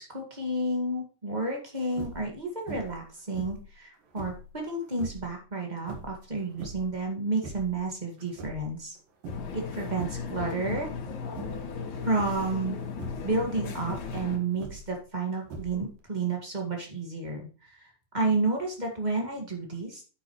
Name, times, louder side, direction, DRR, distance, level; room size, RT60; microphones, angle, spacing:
voice 1, 0.0-8.9 9.5-10.9 12.0-12.8 13.2-20.0, right 2 dB, 35° right, 0 dB, 0.6 m, -31 dB
sound 1, 1.9-2.3 2.7-3.1 3.3-4.5 4.9-5.3 5.8-7.0 7.3-7.8 8.2-9.0 9.2-9.6 9.9-10.3 10.7-11.0 11.3-11.7 12.2-12.5 12.9-13.3 13.8-15.0 15.5-16.0, right 3 dB, 65° right, 3.2 m, -41 dB
sound 2, 9.3-14.4, left 5 dB, 85° left, 4.4 m, -36 dB
10.0 x 8.0 x 3.2 m, 0.36 s
omnidirectional pair, 4.4 m